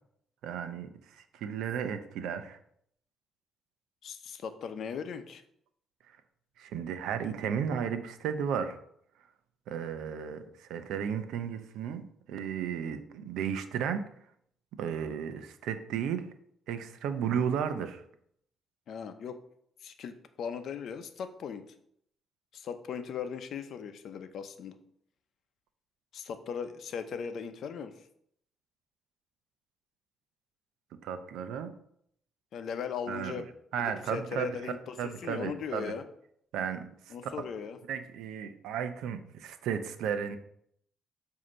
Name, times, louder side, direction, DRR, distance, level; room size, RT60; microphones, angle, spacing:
voice 1, 0.4-0.9 1.2-2.6 6.6-8.8 9.7-10.4 10.7-14.0 14.8-16.2 16.7-18.0 31.0-31.7 33.1-33.3 33.7-34.7 35.0-35.9 36.5-36.8 37.2-37.3 37.9-40.4, right 7 dB, 85° right, 10 dB, 0.6 m, -34 dB
voice 2, 4.0-5.4 18.9-19.4 19.8-21.7 22.5-24.8 26.1-28.0 32.5-36.0 37.1-37.8, left 7 dB, 70° left, 8 dB, 0.7 m, -38 dB
7.6 x 2.8 x 5.4 m, 0.70 s
cardioid pair, 85°, 0 cm